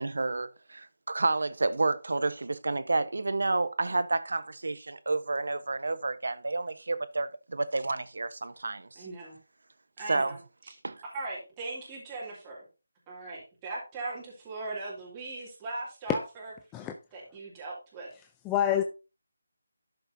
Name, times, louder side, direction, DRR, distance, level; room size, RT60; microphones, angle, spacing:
voice 1, 0.0-9.1 10.1-10.4 10.8-11.0, right 3 dB, 70° right, 1.0 m, -30 dB
voice 2, 9.0-9.4 10.0-10.4 10.6-10.8 11.1-12.6 13.1-16.5 17.1-18.1, right 2 dB, 10° right, 2.5 m, -39 dB
voice 3, 18.5-18.8, left 10 dB, 10° left, 0.4 m, -26 dB
11.5 x 6.5 x 2.7 m
figure-of-eight pair, 175°, 0 cm